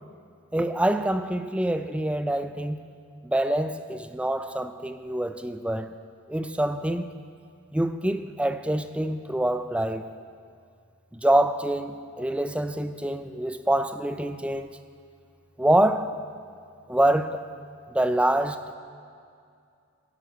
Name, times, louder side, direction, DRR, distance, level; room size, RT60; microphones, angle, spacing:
voice 1, 0.5-2.8 3.2-5.9 6.3-7.2 7.7-10.1 11.1-14.8 15.6-16.2 16.9-17.4 17.9-18.8, right 1 dB, 5° right, 0.4 m, -25 dB
11.5 x 11.0 x 7.9 m
head